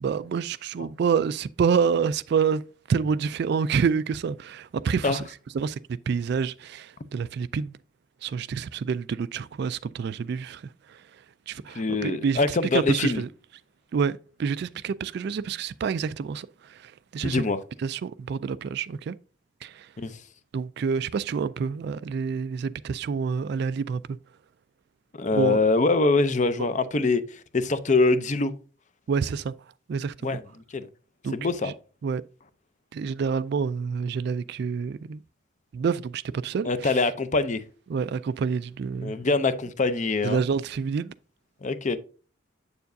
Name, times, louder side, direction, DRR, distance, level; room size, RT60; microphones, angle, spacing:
voice 1, 0.0-2.6 2.9-5.2 5.5-5.8 6.1-7.8 8.2-13.3 13.9-17.4 17.8-19.2 19.6-19.9 20.5-24.2 25.3-25.6 29.1-29.5 29.9-30.4 31.2-31.3 31.6-31.7 32.0-32.2 32.9-35.2 35.7-36.9 37.9-39.2 40.2-41.1, right 6 dB, 55° right, 0.3 m, -28 dB
voice 2, 11.7-13.2 17.2-17.6 20.0-20.2 25.1-28.5 30.2-30.4 30.7-30.9 31.3-31.7 36.6-37.6 39.0-40.4 41.6-42.0, left 3 dB, 40° left, 0.6 m, -24 dB
8.1 x 6.9 x 2.6 m
head